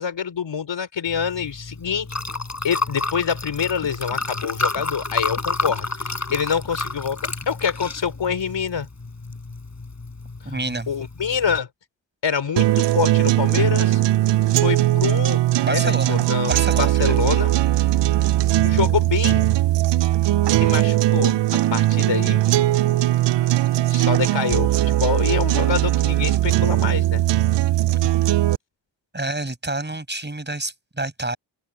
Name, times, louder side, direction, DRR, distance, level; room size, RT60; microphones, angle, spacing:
voice 1, 0.0-2.1 2.6-5.9 6.3-7.2 7.5-8.9 10.9-11.7 12.2-14.0 14.6-15.4 15.7-17.5 18.6-19.5 20.6-21.3 21.7-22.4 23.9-27.2, left 7 dB, 85° left, 5.1 m, -25 dB
Liquid, 1.1-11.6, left 3 dB, 40° left, 7.4 m, -30 dB
voice 2, 10.5-10.9 15.6-16.2 16.4-17.1 29.1-31.4, right 2 dB, 25° right, 5.6 m, -28 dB
sound 1, 12.6-28.6, right 15 dB, 75° right, 0.5 m, -19 dB
open air
cardioid pair, 60°, 43 cm